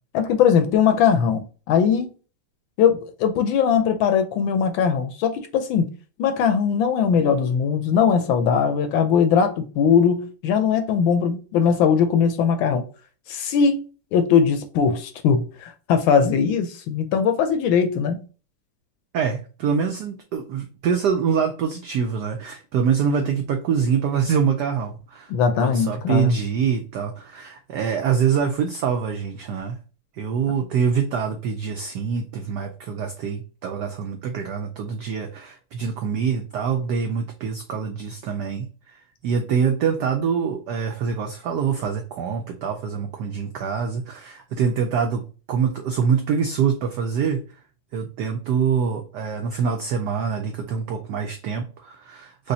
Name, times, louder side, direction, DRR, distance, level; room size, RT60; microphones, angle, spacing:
voice 1, 0.1-2.1 2.8-5.9 6.2-12.8 13.3-13.9 14.1-18.2 25.3-26.3, left 7 dB, 75° left, 1.3 m, -20 dB
voice 2, 19.1-25.3 25.6-29.8 30.2-45.2 45.5-47.5 47.9-52.5, right 6 dB, 80° right, 0.9 m, -25 dB
5.0 x 2.2 x 2.6 m
omnidirectional pair, 2.4 m